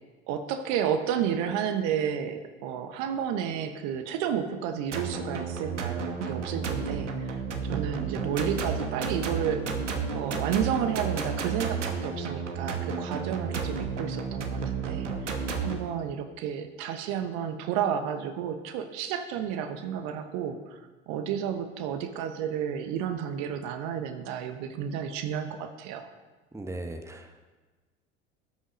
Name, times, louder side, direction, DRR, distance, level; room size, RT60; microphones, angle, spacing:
voice 1, 0.3-7.4 7.6-9.7 10.1-20.8 21.1-26.1, right 8 dB, 50° right, 8 dB, 1.1 m, -31 dB
sound 1, 4.9-15.8, right 5 dB, 80° right, 1.3 m, -32 dB
voice 2, 26.5-27.4, right 2 dB, 10° right, 5 dB, 1.2 m, -38 dB
13.0 x 6.3 x 5.2 m, 1.3 s
figure-of-eight pair, 70°, 36 cm